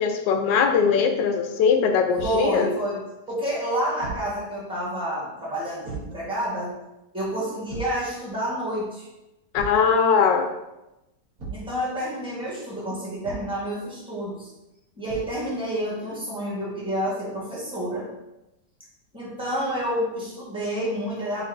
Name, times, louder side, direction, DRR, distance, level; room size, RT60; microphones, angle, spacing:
voice 1, 0.0-2.7 9.5-10.5, left 6 dB, 90° left, 5 dB, 1.3 m, -20 dB
Thump thud, 2.1-2.5 4.0-4.3 5.8-6.2 7.7-8.0 9.5-9.9 11.4-11.7 13.2-13.6 15.1-15.4, right 4 dB, 55° right, 1.7 m, -36 dB
voice 2, 2.2-6.7 7.1-9.1 11.5-14.5 15.0-18.1 19.1-21.4, equal, 5° right, -6 dB, 1.1 m, -29 dB
7.6 x 2.6 x 2.6 m, 0.96 s
omnidirectional pair, 1.9 m